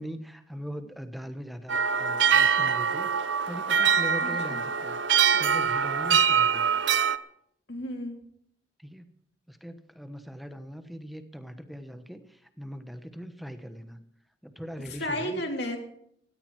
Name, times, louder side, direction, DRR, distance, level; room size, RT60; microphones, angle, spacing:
voice 1, 0.0-6.7 8.8-9.1 9.5-14.0 14.4-15.4, equal, ahead, 8 dB, 1.2 m, -41 dB
sound 1, 1.7-7.2, right 7 dB, 85° right, 0.8 m, -24 dB
voice 2, 4.2-4.6 7.7-8.2 14.9-15.8, left 1 dB, 65° left, 3 dB, 3.2 m, -33 dB
17.0 x 14.0 x 4.8 m, 0.70 s
head